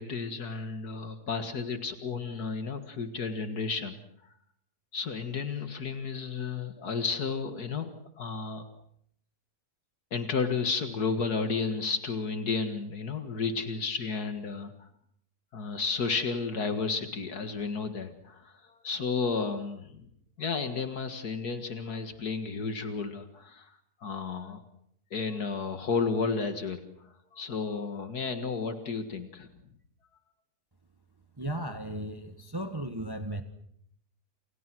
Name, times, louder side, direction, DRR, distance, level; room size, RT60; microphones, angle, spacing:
voice 1, 0.0-4.0 4.9-7.9 8.2-8.6 10.1-14.9 15.5-20.1 20.4-23.7 24.0-24.6 25.1-26.9 27.3-29.5, left 4 dB, 75° left, 8 dB, 2.3 m, -32 dB
voice 2, 31.4-33.4, right 1 dB, 15° right, 8 dB, 1.6 m, -35 dB
29.0 x 29.0 x 6.2 m, 0.70 s
omnidirectional pair, 1.7 m